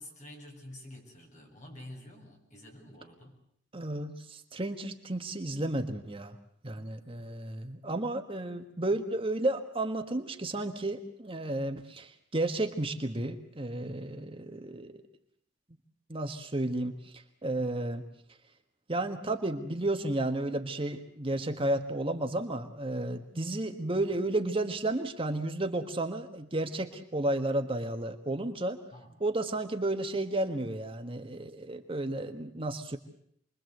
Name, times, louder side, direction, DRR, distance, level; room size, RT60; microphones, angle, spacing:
voice 1, 0.0-3.4 28.9-29.2, left 1 dB, 40° left, 2 dB, 7.6 m, -48 dB
voice 2, 3.7-6.4 6.6-15.0 16.1-18.0 18.9-28.8 29.2-33.0, right 2 dB, 30° right, 6 dB, 1.6 m, -32 dB
28.0 x 22.5 x 8.0 m, 0.66 s
head